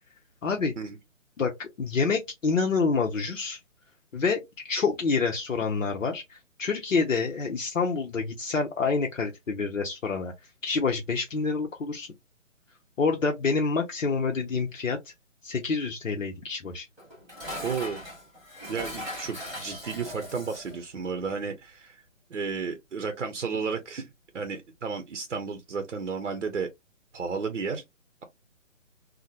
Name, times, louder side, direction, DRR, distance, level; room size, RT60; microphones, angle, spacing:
voice 1, 0.4-0.7 1.4-3.6 4.1-10.3 10.6-12.1 13.0-15.1 15.4-16.9, left 4 dB, 75° left, 0.7 m, -27 dB
Dishes pots and pans, 17.0-20.8, left 1 dB, ahead, 0.6 m, -39 dB
voice 2, 17.6-18.0 18.7-22.0 22.3-24.1 24.3-26.7 27.1-27.8, right 5 dB, 65° right, 0.6 m, -32 dB
2.9 x 2.1 x 2.7 m
figure-of-eight pair, 140°, 39 cm